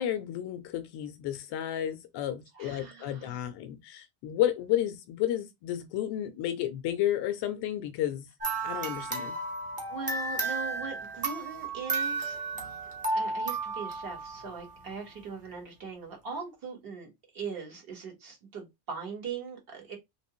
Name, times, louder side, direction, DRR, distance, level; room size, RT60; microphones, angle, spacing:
voice 1, 0.0-8.3 8.6-9.4, left 12 dB, 55° left, 0.5 m, -32 dB
voice 2, 2.5-3.4 9.9-12.4 13.1-20.0, right 5 dB, 45° right, 1.6 m, -40 dB
sound 1, 8.4-14.9, right 3 dB, 15° right, 0.6 m, -33 dB
3.2 x 2.9 x 3.0 m
cardioid pair, 180°, 50 cm